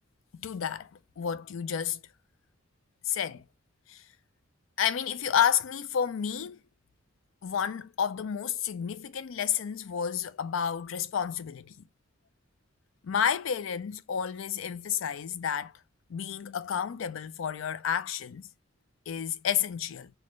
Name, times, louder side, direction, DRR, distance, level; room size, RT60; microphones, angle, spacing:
voice 1, 0.4-0.9 1.2-2.0 3.1-3.4 3.9-4.0 4.8-6.6 7.4-11.8 13.0-15.7 16.1-18.4 19.1-20.1, left 8 dB, 75° left, 0.4 m, -30 dB
4.1 x 2.2 x 3.0 m
head